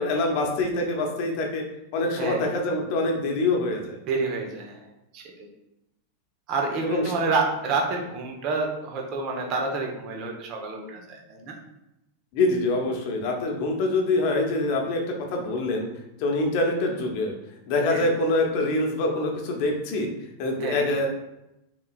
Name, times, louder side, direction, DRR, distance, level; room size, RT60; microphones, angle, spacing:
voice 1, 0.0-1.6 1.9-4.0 6.8-7.1 12.3-15.9 16.2-17.3 17.7-20.1 20.4-21.1, left 2 dB, 45° left, 2 dB, 1.0 m, -25 dB
voice 2, 4.1-4.8 5.1-5.5 6.5-11.6 17.9-18.1 20.6-20.9, right 3 dB, 40° right, 2 dB, 1.1 m, -28 dB
6.1 x 3.6 x 2.4 m, 0.89 s
figure-of-eight pair, 90°, 0 cm